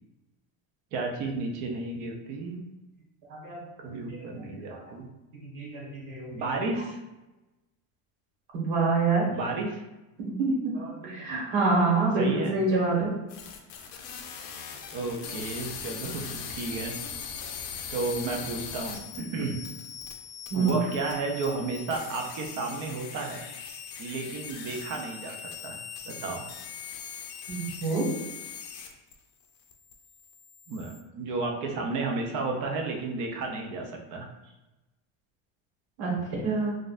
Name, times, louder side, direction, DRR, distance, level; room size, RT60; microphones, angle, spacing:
voice 1, 0.9-2.6 3.8-5.1 6.3-7.0 9.3-9.8 12.2-12.5 14.9-16.9 17.9-19.6 20.5-23.4 24.0-25.4 25.6-25.8 26.1-26.5 30.7-34.3, right 3 dB, 45° right, 2 dB, 0.5 m, -32 dB
voice 2, 3.3-3.6 3.9-4.0 4.4-4.8 5.4-6.3 8.5-9.2 10.4-13.1 20.5-20.8 27.5-28.0 36.0-36.8, right 3 dB, 65° right, -4 dB, 1.3 m, -27 dB
sound 1, 13.3-29.1 29.4-31.0, left 7 dB, 65° left, 0.6 m, -40 dB
4.1 x 2.4 x 2.4 m, 1.0 s
cardioid pair, 175°, 47 cm